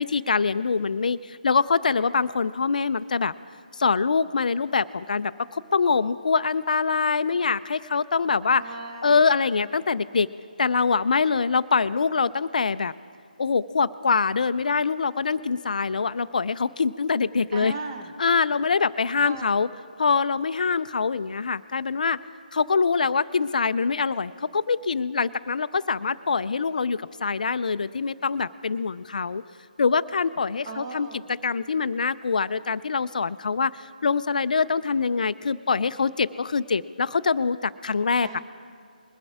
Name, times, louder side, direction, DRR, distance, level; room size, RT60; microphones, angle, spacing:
voice 1, 0.0-3.3 3.7-8.6 9.0-10.3 10.6-12.9 13.4-17.7 18.2-19.7 20.0-22.2 22.5-29.4 29.8-31.1 31.4-38.4, left 5 dB, 60° left, 16 dB, 0.3 m, -24 dB
voice 2, 8.5-9.2 17.5-18.1 19.2-19.6 30.6-31.3 38.2-38.4, right 4 dB, 30° right, 4 dB, 1.3 m, -37 dB
21.0 x 7.7 x 4.8 m, 2.3 s
figure-of-eight pair, 150°, 5 cm